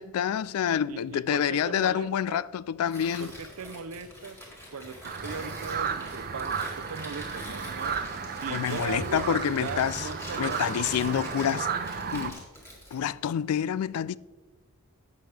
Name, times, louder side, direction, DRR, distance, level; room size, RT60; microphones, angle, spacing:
voice 1, 0.0-3.3 8.5-10.1 10.4-11.7 12.1-12.4 12.9-14.2, left 8 dB, 75° left, 0.3 m, -28 dB
voice 2, 0.9-2.4 3.2-4.4 4.7-8.1 8.3-11.0, right 5 dB, 80° right, 0.6 m, -39 dB
Tearing, 2.9-13.1, equal, 10° left, 2.2 m, -44 dB
sound 1, 5.0-12.3, right 6 dB, 45° right, 0.7 m, -33 dB
12.0 x 8.4 x 3.4 m
head